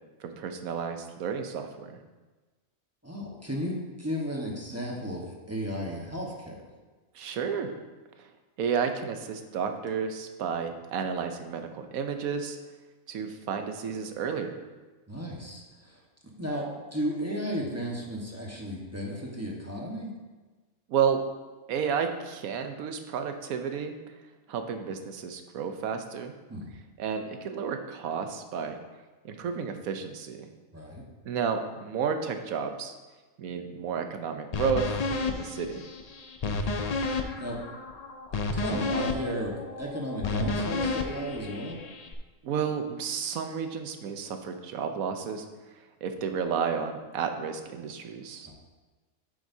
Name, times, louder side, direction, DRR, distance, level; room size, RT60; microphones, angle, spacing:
voice 1, 0.2-2.0 7.1-7.7 8.6-12.6 13.1-14.6 20.9-21.2 21.7-23.9 24.5-26.3 27.0-28.8 29.2-30.5 31.2-32.9 33.4-34.9 35.3-35.8 42.4-45.4 46.0-48.5, right 6 dB, 85° right, 7 dB, 1.2 m, -31 dB
voice 2, 3.0-6.6 15.1-16.0 16.4-20.1 26.5-26.7 30.7-31.0 36.4-36.9 37.4-37.6 38.5-41.8 48.5-48.6, equal, 10° right, -3 dB, 1.0 m, -34 dB
sound 1, 34.5-42.1, left 3 dB, 70° left, 0.3 m, -31 dB
8.9 x 7.8 x 2.7 m, 1.3 s
omnidirectional pair, 1.4 m